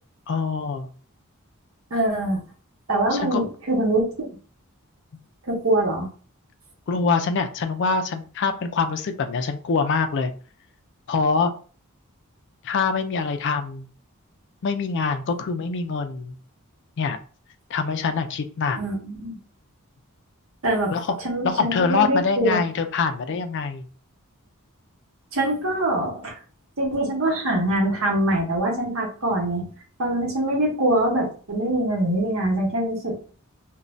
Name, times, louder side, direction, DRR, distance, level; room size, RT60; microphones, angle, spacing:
voice 1, 0.3-0.9 3.1-3.4 6.9-10.3 11.1-11.5 12.6-13.9 14.6-16.4 17.0-17.2 17.7-18.8 20.9-21.2 21.4-23.9, left 4 dB, 55° left, 7 dB, 0.4 m, -24 dB
voice 2, 1.9-2.4 2.9-4.3 5.5-6.1 18.8-19.4 20.6-20.9 21.2-22.6 25.3-26.3 26.8-29.7 30.0-33.3, right 1 dB, 65° right, -1 dB, 1.1 m, -23 dB
2.6 x 2.2 x 3.1 m, 0.40 s
head